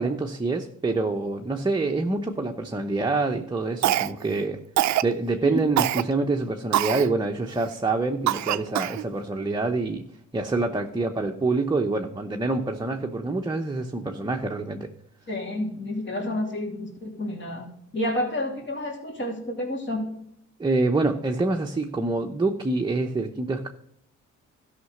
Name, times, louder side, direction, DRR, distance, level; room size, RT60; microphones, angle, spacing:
voice 1, 0.0-4.6 5.0-10.0 10.3-14.9 20.6-23.7, right 3 dB, 15° right, 2 dB, 0.9 m, -26 dB
Cough, 3.8-4.3 4.8-5.1 5.8-6.0 6.7-7.1 7.6-7.7 8.3-9.0, right 14 dB, 65° right, 0.6 m, -23 dB
voice 2, 15.3-17.7 17.9-20.1, left 1 dB, 40° left, 2 dB, 3.0 m, -30 dB
13.0 x 5.8 x 6.5 m, 0.72 s
cardioid pair, 90°, 30 cm